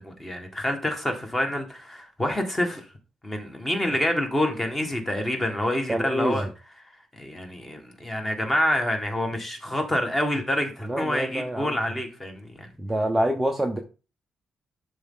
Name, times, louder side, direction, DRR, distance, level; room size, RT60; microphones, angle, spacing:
voice 1, 0.0-2.9 3.2-6.5 7.1-12.7, left 1 dB, 10° left, 1.5 m, -27 dB
voice 2, 5.9-6.4 10.8-11.8 12.8-13.8, right 1 dB, 5° right, 0.7 m, -26 dB
11.5 x 4.2 x 3.7 m
wide cardioid pair, 175°, 2 cm